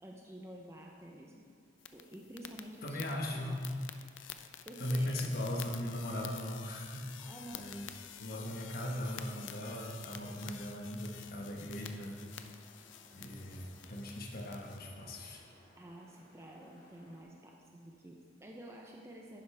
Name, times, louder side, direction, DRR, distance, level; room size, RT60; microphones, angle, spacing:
voice 1, 0.0-1.5 1.9-3.6 4.6-5.2 7.2-7.7 15.8-19.4, right 1 dB, 15° right, 0 dB, 0.7 m, -50 dB
sound 1, 1.8-14.8, left 9 dB, 75° left, 0.5 m, -50 dB
voice 2, 2.8-3.8 4.8-7.2 7.5-7.8 8.2-12.2 13.1-15.4, left 1 dB, 50° left, 0 dB, 1.3 m, -38 dB
sound 2, 11.1-17.2, equal, 20° left, 2.4 m, -63 dB
11.0 x 10.0 x 3.5 m, 2.2 s
head